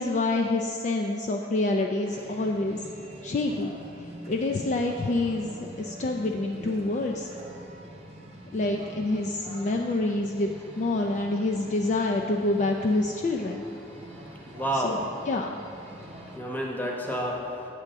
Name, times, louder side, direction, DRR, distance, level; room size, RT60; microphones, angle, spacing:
voice 1, 0.0-2.8 3.2-3.7 4.3-5.5 5.8-7.3 8.5-10.5 10.8-13.6 14.7-15.5, left 2 dB, 40° left, 2 dB, 0.3 m, -27 dB
sound 1, 2.0-16.4, right 1 dB, 35° right, 0.8 m, -45 dB
voice 2, 13.9-15.0 16.0-17.7, equal, 10° left, -2 dB, 0.9 m, -31 dB
9.0 x 3.6 x 6.7 m, 2.8 s
head